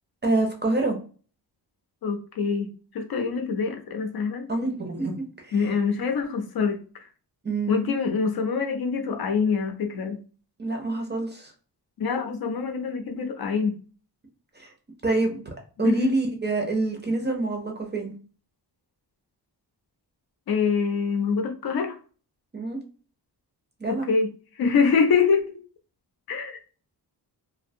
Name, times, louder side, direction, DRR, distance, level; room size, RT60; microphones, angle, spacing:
voice 1, 0.2-1.0 4.5-5.7 7.4-8.0 10.6-11.5 14.5-14.7 15.0-15.4 15.8-18.1 22.5-22.8 23.8-24.1, right 2 dB, 25° right, 3 dB, 0.4 m, -26 dB
voice 2, 2.0-4.5 5.5-6.8 7.7-10.2 12.0-13.8 15.8-16.1 20.5-22.0 24.1-24.3 24.6-25.4 26.3-26.6, left 5 dB, 60° left, 6 dB, 0.5 m, -25 dB
2.6 x 2.1 x 2.5 m, 0.38 s
wide cardioid pair, 140°, 42 cm